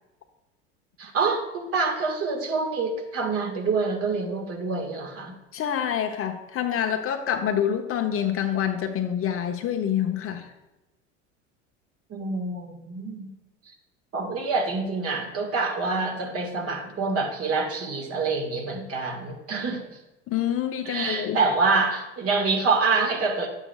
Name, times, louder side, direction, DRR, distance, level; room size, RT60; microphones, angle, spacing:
voice 1, 1.0-5.3 12.1-13.3 14.1-19.8 20.9-23.5, right 4 dB, 40° right, 2 dB, 1.7 m, -26 dB
voice 2, 5.5-10.5 20.3-21.4, left 9 dB, 40° left, 5 dB, 0.9 m, -26 dB
9.8 x 8.1 x 2.3 m, 1.0 s
hypercardioid pair, 80°, 36 cm